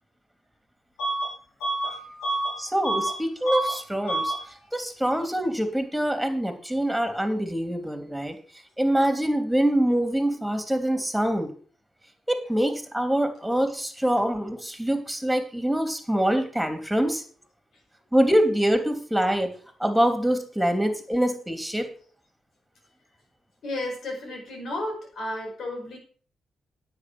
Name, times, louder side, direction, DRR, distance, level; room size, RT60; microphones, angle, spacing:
Bus / Alarm, 1.0-1.3 1.6-3.2 3.4-3.8 4.1-4.4, right 2 dB, 90° left, 5.0 m, -28 dB
voice 1, 2.6-4.3 4.7-8.3 8.8-11.5 12.3-17.2 18.1-19.5 19.8-21.9, right 1 dB, 5° right, 7 dB, 3.2 m, -24 dB
voice 2, 23.6-26.0, left 1 dB, 70° left, 2 dB, 5.1 m, -33 dB
9.8 x 8.3 x 6.3 m, 0.44 s
supercardioid pair, 50°, 0 cm